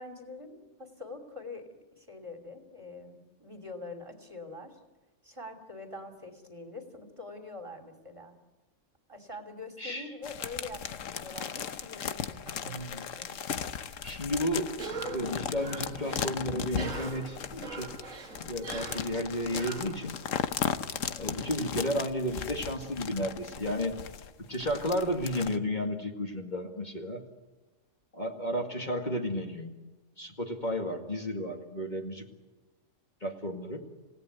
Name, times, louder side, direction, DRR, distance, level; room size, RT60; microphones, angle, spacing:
voice 1, 0.0-4.8 5.2-8.3 9.1-13.3 20.7-21.1, left 2 dB, 25° right, 5 dB, 2.8 m, -45 dB
voice 2, 9.8-10.1 12.6-13.1 14.0-14.7 15.1-17.9 18.4-20.2 21.1-24.0 24.4-27.2 28.1-29.7 30.2-32.3 33.2-33.9, equal, 35° left, 2 dB, 2.3 m, -33 dB
sound 1, 10.2-25.6, left 7 dB, 75° left, 1.3 m, -37 dB
Cough, 14.7-20.5, right 4 dB, 85° right, 2.2 m, -42 dB
28.0 x 17.5 x 9.4 m, 1.3 s
omnidirectional pair, 1.3 m